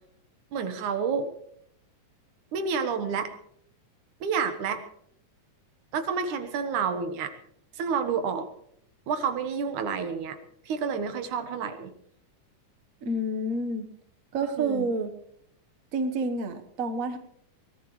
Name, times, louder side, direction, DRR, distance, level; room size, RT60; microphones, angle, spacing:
voice 1, 0.5-1.3 2.5-3.3 4.2-4.8 5.9-7.3 7.7-8.5 9.1-10.4 10.7-11.9 14.6-14.9, right 6 dB, 75° right, 8 dB, 2.8 m, -29 dB
voice 2, 13.0-13.8 14.3-15.1 15.9-17.2, right 2 dB, 55° right, 7 dB, 0.9 m, -29 dB
23.5 x 18.5 x 3.2 m, 0.70 s
omnidirectional pair, 3.5 m